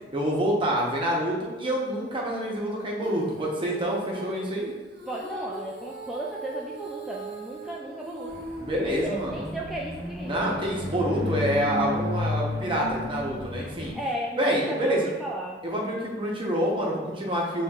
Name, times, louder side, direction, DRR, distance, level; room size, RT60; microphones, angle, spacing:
voice 1, 0.1-4.7 8.6-9.5 10.2-13.9 14.4-15.1 15.6-17.6, equal, 30° right, -2 dB, 0.8 m, -27 dB
Female singing, 3.0-9.5, right 3 dB, 65° right, 0.9 m, -39 dB
voice 2, 5.1-8.3 8.8-10.3 13.9-15.6, right 1 dB, ahead, -4 dB, 0.3 m, -34 dB
sound 1, 8.3-13.9, left 2 dB, 55° left, 1.3 m, -33 dB
6.8 x 3.1 x 2.4 m, 1.2 s
head